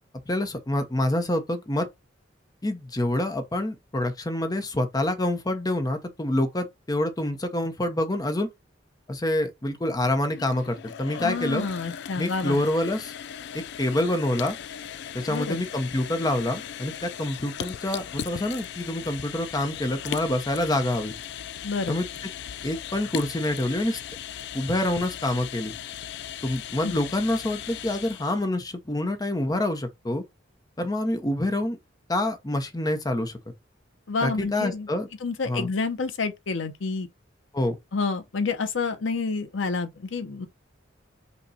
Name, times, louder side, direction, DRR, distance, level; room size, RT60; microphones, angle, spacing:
voice 1, 0.3-1.9 2.6-8.5 9.1-11.7 12.2-13.1 13.5-14.6 15.1-21.1 21.9-22.1 22.6-24.0 24.5-25.7 26.4-30.2 30.8-31.8 32.1-33.4 34.2-35.1 35.5-35.7 37.5-37.8, left 1 dB, 20° left, 0.7 m, -27 dB
sound 1, 10.3-28.5, left 9 dB, 65° left, 0.3 m, -38 dB
voice 2, 11.2-12.6 15.3-15.6 21.6-22.0 26.8-26.9 34.1-34.9 35.2-37.1 37.9-40.5, left 4 dB, 85° left, 0.7 m, -28 dB
5.4 x 2.2 x 4.0 m
head